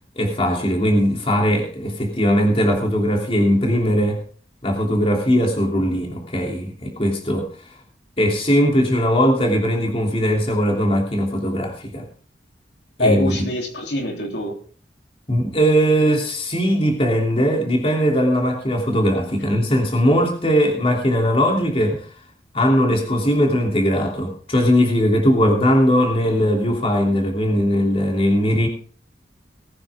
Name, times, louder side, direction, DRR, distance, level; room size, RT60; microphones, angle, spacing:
voice 1, 0.2-4.2 4.6-7.5 8.2-12.0 13.0-13.3 15.3-22.1 22.5-28.7, equal, 35° left, 1 dB, 3.1 m, -19 dB
voice 2, 13.0-14.6, left 1 dB, 70° left, 1 dB, 3.4 m, -23 dB
20.0 x 9.6 x 3.6 m, 0.42 s
head